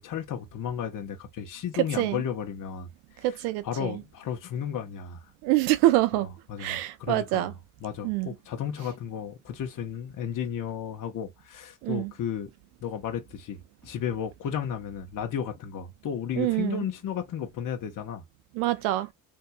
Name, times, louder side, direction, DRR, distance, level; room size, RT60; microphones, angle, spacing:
voice 1, 0.0-5.2 6.1-7.6 7.8-12.5 12.8-18.2, left 8 dB, 55° left, 1.0 m, -34 dB
voice 2, 3.2-4.0 5.4-6.3 6.6-7.5 8.0-8.3 11.8-12.1 16.4-16.8 18.6-19.1, right 16 dB, 85° right, 0.5 m, -25 dB
4.2 x 2.8 x 2.2 m
supercardioid pair, 60°, 38 cm